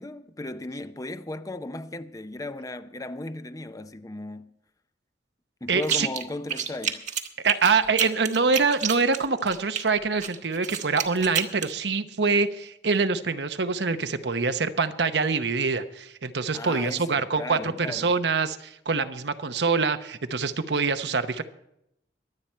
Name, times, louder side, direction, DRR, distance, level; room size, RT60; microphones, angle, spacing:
voice 1, 0.0-4.5 5.6-7.0 16.5-18.2, left 2 dB, 20° left, 0.5 m, -36 dB
voice 2, 5.7-6.1 7.4-21.4, right 4 dB, 75° right, 0.9 m, -25 dB
sound 1, 5.8-6.2 6.5-9.8 10.2-11.7, right 7 dB, 45° right, 1.1 m, -29 dB
23.0 x 8.8 x 4.5 m
head